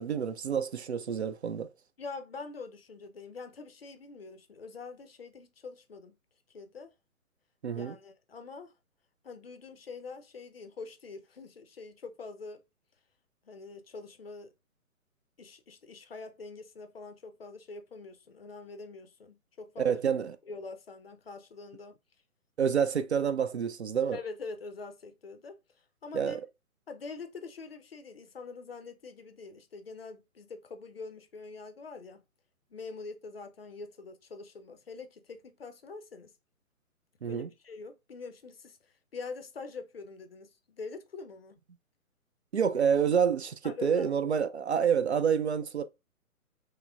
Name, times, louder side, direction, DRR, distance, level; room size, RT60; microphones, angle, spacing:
voice 1, 0.0-1.7 7.6-7.9 19.8-20.4 22.6-24.2 26.1-26.4 37.2-37.5 42.5-45.8, right 7 dB, 50° right, 0.4 m, -28 dB
voice 2, 2.0-6.2 6.5-6.9 7.7-8.7 9.2-12.6 13.4-14.5 15.4-20.0 20.5-22.0 24.1-26.4 26.9-32.2 32.7-36.3 37.3-41.6 43.6-44.1, left 4 dB, 45° left, 0.6 m, -44 dB
3.7 x 3.1 x 2.3 m
figure-of-eight pair, 135°, 44 cm